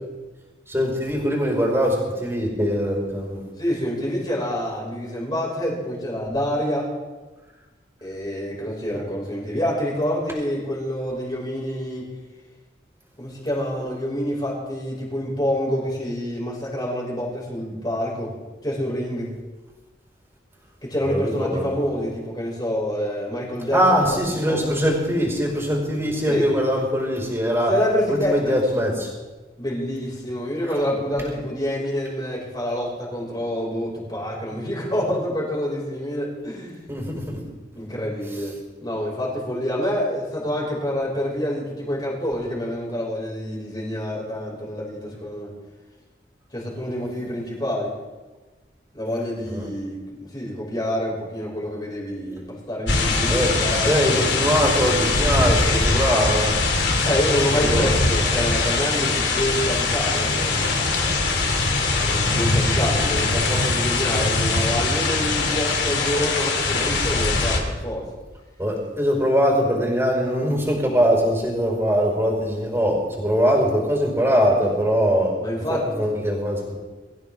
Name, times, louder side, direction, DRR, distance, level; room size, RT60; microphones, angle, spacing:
voice 1, 0.7-3.4 21.0-21.7 23.7-27.7 28.1-29.1 36.9-37.4 49.5-49.7 53.3-53.5 53.8-56.6 57.5-57.9 68.6-75.4 75.7-76.8, equal, 15° right, -2 dB, 5.0 m, -22 dB
voice 2, 3.6-6.9 8.0-12.1 13.2-18.3 18.6-19.3 20.8-24.8 26.3-26.5 27.7-28.6 29.6-36.8 37.8-45.5 46.5-47.9 48.9-54.4 57.0-60.7 62.0-68.0 75.4-76.1, equal, 25° left, -4 dB, 6.0 m, -27 dB
sound 1, 52.9-67.6, left 3 dB, 85° left, 2.9 m, -22 dB
24.0 x 15.0 x 3.7 m, 1.2 s
head